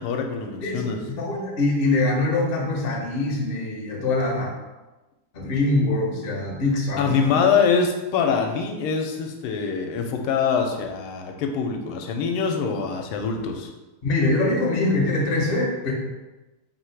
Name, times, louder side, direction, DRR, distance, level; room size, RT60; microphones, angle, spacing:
voice 1, 0.0-1.0 7.0-13.7, left 6 dB, 85° left, 4 dB, 1.5 m, -24 dB
voice 2, 0.6-4.5 5.3-7.3 14.0-15.9, left 2 dB, 70° left, -1 dB, 0.5 m, -23 dB
3.6 x 2.7 x 4.5 m, 1.1 s
omnidirectional pair, 2.3 m